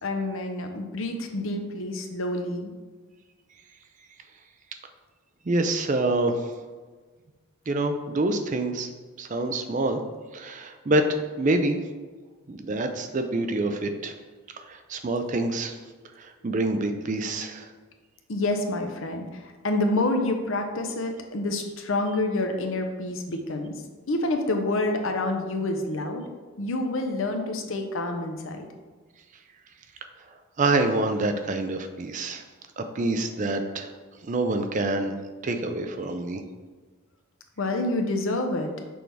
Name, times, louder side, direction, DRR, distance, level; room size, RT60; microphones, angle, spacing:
voice 1, 0.0-2.7 18.3-23.7 24.1-26.2 26.6-28.7 37.6-38.7, left 2 dB, 65° left, 4 dB, 0.7 m, -28 dB
voice 2, 5.5-6.3 7.7-8.9 9.2-10.0 10.3-11.8 12.5-14.1 14.7-15.7 16.4-17.7 30.6-32.4 32.8-33.9 34.3-35.1 35.4-36.4, right 2 dB, 35° right, 7 dB, 0.4 m, -26 dB
6.2 x 4.6 x 3.4 m, 1.4 s
head